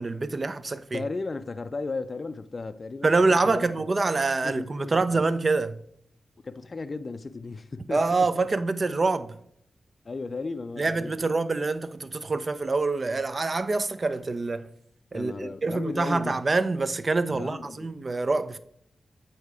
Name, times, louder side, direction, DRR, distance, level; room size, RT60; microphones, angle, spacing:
voice 1, 0.0-1.0 3.0-5.8 7.9-9.3 10.8-14.7 15.1-18.6, right 3 dB, 45° right, 0.5 m, -26 dB
voice 2, 0.9-3.1 3.4-3.9 4.4-5.2 6.4-8.3 10.0-11.3 15.1-16.4 17.3-17.9, left 3 dB, 45° left, 0.3 m, -35 dB
8.1 x 2.8 x 4.7 m
cardioid pair, 55°, 0 cm